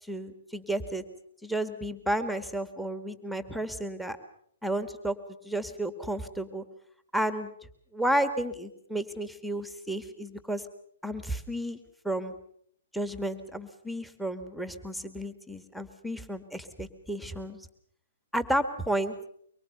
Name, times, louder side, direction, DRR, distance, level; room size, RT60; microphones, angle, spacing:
voice 1, 0.1-1.0 1.4-4.2 4.6-5.2 5.4-6.6 7.1-7.5 7.9-10.6 11.0-11.8 12.0-12.4 12.9-17.6 18.3-19.1, right 1 dB, ahead, 9 dB, 1.8 m, -32 dB
24.0 x 24.0 x 6.8 m, 0.66 s
hypercardioid pair, 130°, 0 cm